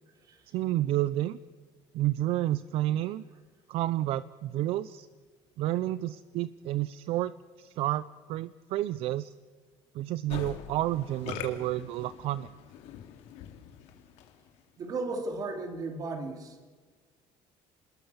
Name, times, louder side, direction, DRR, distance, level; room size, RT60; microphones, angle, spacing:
voice 1, 0.5-1.4 1.9-3.2 3.7-5.1 5.6-9.3 9.9-12.5, right 14 dB, 60° right, 16 dB, 0.6 m, -30 dB
Musical instrument, 10.3-14.6, left 9 dB, 75° left, 3.2 m, -43 dB
voice 2, 14.8-16.7, right 3 dB, 35° right, 5 dB, 3.4 m, -35 dB
27.5 x 21.0 x 7.2 m, 1.5 s
cardioid pair, 175°, 11 cm